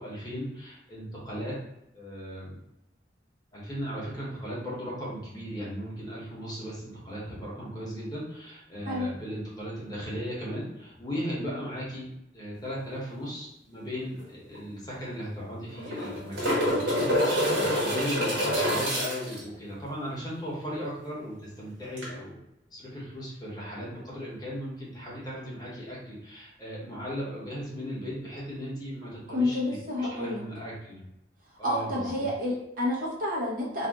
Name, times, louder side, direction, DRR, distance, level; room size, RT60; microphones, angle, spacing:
voice 1, 0.0-1.6 1.9-2.6 3.5-22.3 22.7-31.0 31.6-32.1, equal, 20° left, -6 dB, 1.0 m, -37 dB
sound 1, 14.2-14.3 14.5-14.6 15.7-19.4 22.0-22.1, equal, 70° right, 1.2 m, -26 dB
voice 2, 29.3-30.4 31.6-33.9, left 1 dB, 50° right, -5 dB, 0.9 m, -29 dB
2.6 x 2.4 x 3.5 m, 0.85 s
head